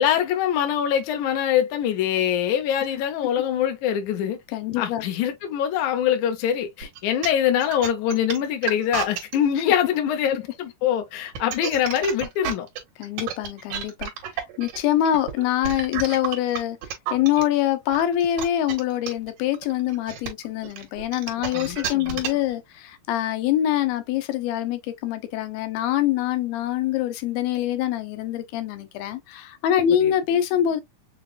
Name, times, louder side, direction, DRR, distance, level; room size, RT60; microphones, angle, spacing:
voice 1, 0.0-4.4 4.8-12.7 21.5-22.2 30.0-30.1, left 9 dB, 70° left, 1.9 m, -24 dB
voice 2, 4.5-5.1 9.6-9.7 13.0-16.8 17.1-30.8, left 11 dB, 90° left, 2.6 m, -24 dB
sound 1, 6.8-9.3 11.2-17.4 17.9-22.5, right 9 dB, 70° right, 2.7 m, -31 dB
6.8 x 2.4 x 2.3 m
omnidirectional pair, 4.2 m